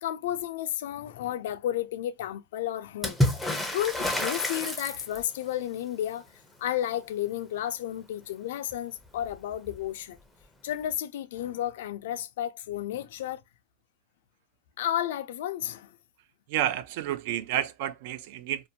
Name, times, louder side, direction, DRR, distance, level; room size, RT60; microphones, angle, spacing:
voice 1, 0.0-6.3 6.6-10.2 10.6-13.4 14.8-15.9, left 12 dB, 80° left, 0.3 m, -32 dB
Water / Splash splatter, 3.0-5.4 8.7-8.8 9.1-9.8 10.9-11.0, left 1 dB, ahead, 0.5 m, -29 dB
voice 2, 16.5-18.7, right 12 dB, 60° right, 0.3 m, -30 dB
2.5 x 2.1 x 2.7 m
supercardioid pair, 155°, 0 cm